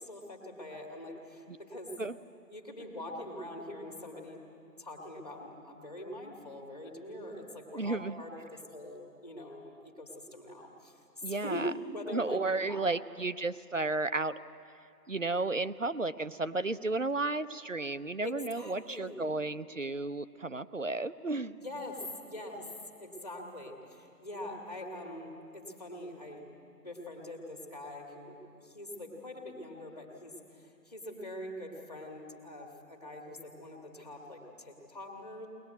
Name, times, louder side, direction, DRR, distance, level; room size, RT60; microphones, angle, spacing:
voice 1, 0.0-1.9 2.5-4.4 4.6-11.7 11.9-12.9 18.2-19.2 21.5-22.7 23.0-26.5 26.8-35.5, left 1 dB, 25° left, 1 dB, 2.1 m, -43 dB
voice 2, 7.7-8.2 11.2-11.7 12.1-14.3 15.1-21.6, right 3 dB, 50° right, 13 dB, 0.7 m, -33 dB
22.5 x 19.5 x 9.3 m, 2.5 s
figure-of-eight pair, 180°, 48 cm